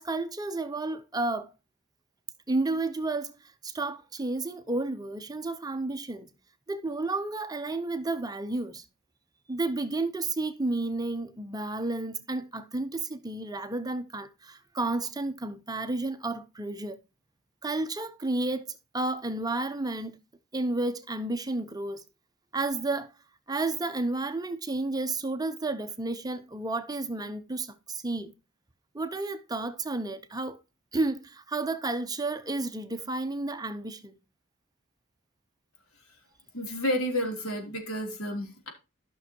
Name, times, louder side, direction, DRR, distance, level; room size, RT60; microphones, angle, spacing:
voice 1, 0.0-1.5 2.5-3.4 3.6-6.3 6.7-8.8 9.5-17.0 17.6-18.7 18.9-20.2 20.5-22.0 22.5-23.1 23.5-28.3 28.9-30.6 30.9-34.2, right 2 dB, 20° right, 0.8 m, -31 dB
voice 2, 36.5-38.7, equal, 85° left, 3.2 m, -31 dB
13.0 x 6.2 x 2.9 m
head